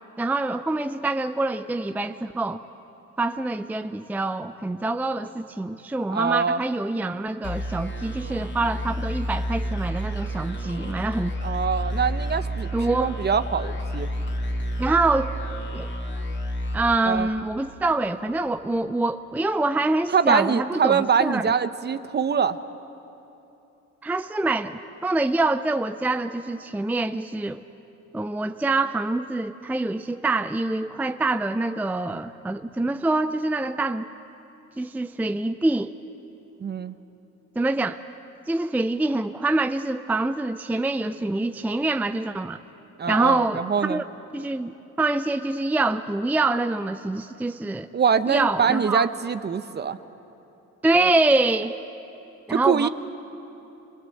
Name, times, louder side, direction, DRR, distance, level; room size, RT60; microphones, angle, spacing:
voice 1, 0.2-2.6 3.2-11.3 12.7-13.1 14.8-15.3 15.7-15.9 16.7-21.4 24.0-27.6 28.1-34.1 34.8-35.9 37.6-38.0 38.5-42.6 43.1-44.0 44.3-44.7 45.0-47.9 48.3-49.1 50.8-51.7 52.5-52.9, right 2 dB, 5° right, 9 dB, 0.5 m, -25 dB
voice 2, 6.1-6.6 11.4-14.1 17.0-17.3 20.1-22.6 36.6-37.0 43.0-44.0 47.9-50.0 52.5-52.9, right 6 dB, 35° right, 12 dB, 0.8 m, -24 dB
sound 1, 7.4-17.7, equal, 40° left, 2.7 m, -30 dB
26.0 x 20.0 x 7.8 m, 3.0 s
cardioid pair, 90°, 30 cm